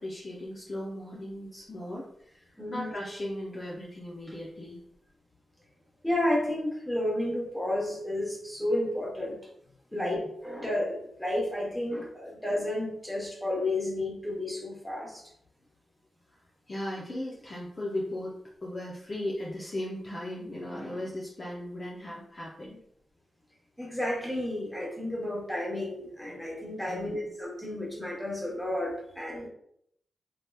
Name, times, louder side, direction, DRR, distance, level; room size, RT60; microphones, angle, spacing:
voice 1, 0.0-4.8 9.9-10.1 16.3-16.4 16.7-22.8 26.9-27.1, left 1 dB, 30° left, -4 dB, 0.5 m, -37 dB
voice 2, 2.6-2.9 6.0-9.4 9.9-15.2 23.8-29.5, left 1 dB, 5° left, -3 dB, 1.0 m, -31 dB
3.2 x 2.8 x 2.2 m, 0.70 s
wide cardioid pair, 130°, 0 cm